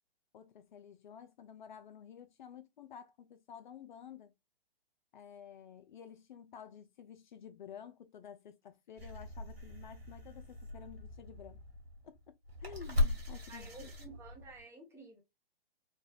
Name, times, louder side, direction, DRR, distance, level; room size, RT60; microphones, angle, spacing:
voice 1, 0.3-4.3 5.1-11.6 12.0-12.2 12.6-13.9, left 8 dB, 55° left, 0.4 m, -52 dB
sound 1, 9.0-14.6, left 2 dB, 85° right, 1.8 m, -38 dB
voice 2, 13.5-15.2, right 3 dB, 10° right, 0.8 m, -52 dB
3.6 x 2.3 x 2.3 m
hypercardioid pair, 135°, 30 cm